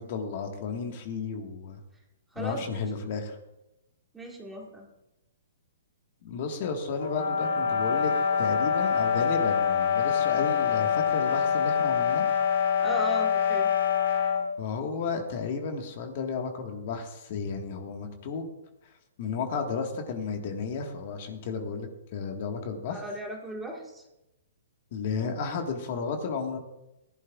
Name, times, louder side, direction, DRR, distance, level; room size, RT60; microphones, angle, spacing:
voice 1, 0.0-1.8 2.4-3.4 6.2-8.1 8.4-12.3 14.6-18.5 19.2-23.0 24.9-26.6, left 5 dB, 40° left, 4 dB, 1.5 m, -33 dB
voice 2, 2.3-2.8 4.1-4.9 12.8-13.7 22.9-24.0, equal, 5° right, -1 dB, 1.6 m, -36 dB
sound 1, 7.0-14.5, left 7 dB, 70° left, 3.5 m, -25 dB
19.0 x 11.5 x 2.4 m, 0.94 s
hypercardioid pair, 165°, 0 cm